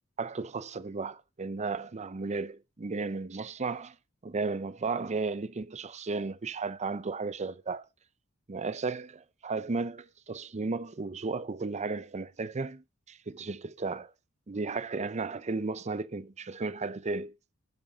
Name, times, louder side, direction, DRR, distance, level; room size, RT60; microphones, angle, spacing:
voice 1, 0.2-4.0 4.2-7.8 8.5-14.1 14.5-17.3, right 4 dB, 30° right, 0.6 m, -34 dB
10.5 x 7.4 x 3.9 m
head